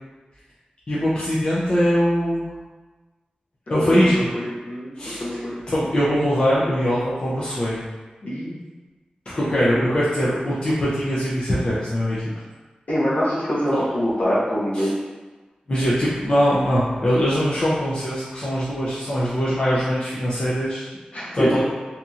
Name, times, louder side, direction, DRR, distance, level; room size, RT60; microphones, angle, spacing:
voice 1, 0.9-2.4 3.7-4.1 5.0-5.4 5.7-7.8 9.3-12.2 13.7-13.8 14.7-14.9 15.7-20.9 21.3-21.6, equal, 40° left, -9 dB, 0.5 m, -22 dB
voice 2, 3.7-5.6 8.2-8.5 9.4-9.7 12.9-14.9 21.1-21.5, equal, 60° left, -8 dB, 0.9 m, -25 dB
2.7 x 2.6 x 2.4 m, 1.3 s
wide cardioid pair, 105°, 3 cm